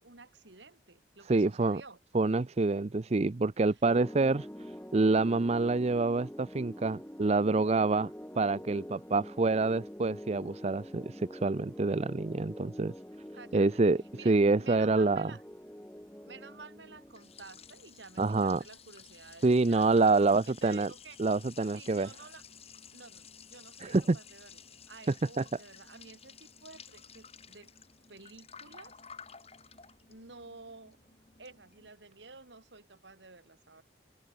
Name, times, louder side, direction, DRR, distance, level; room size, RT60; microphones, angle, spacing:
voice 1, 0.0-2.0 13.3-13.8 14.2-15.4 16.2-21.2 21.7-22.4 22.9-24.6 24.9-27.7 28.1-29.0 30.1-31.0 31.4-33.8, right 3 dB, 80° right, 3.5 m, -51 dB
voice 2, 1.3-1.8 2.1-8.1 8.4-12.9 13.5-15.3 18.2-18.6 19.4-20.9 21.2-22.1 23.8-24.2 25.4-25.5, right 3 dB, 35° right, 0.5 m, -27 dB
sound 1, 3.8-18.2, equal, 10° left, 2.4 m, -46 dB
Liquid, 16.7-31.9, left 6 dB, 35° left, 8.0 m, -54 dB
open air
head